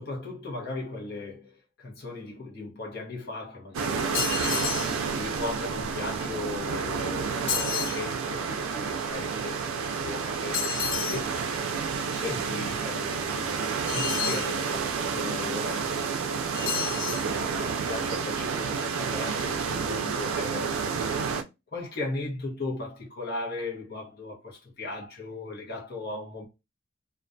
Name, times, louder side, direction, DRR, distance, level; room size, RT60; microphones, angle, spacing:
voice 1, 0.0-4.4 4.7-10.6 11.1-11.3 12.1-16.1 16.8-20.7 21.7-26.5, left 3 dB, 50° left, 0.8 m, -37 dB
sound 1, 3.7-21.4, right 5 dB, 85° right, 0.4 m, -30 dB
sound 2, 4.1-5.0 7.5-8.0 10.5-11.2 13.9-14.5 16.5-17.3, left 8 dB, 70° left, 0.5 m, -30 dB
2.4 x 2.2 x 2.6 m
head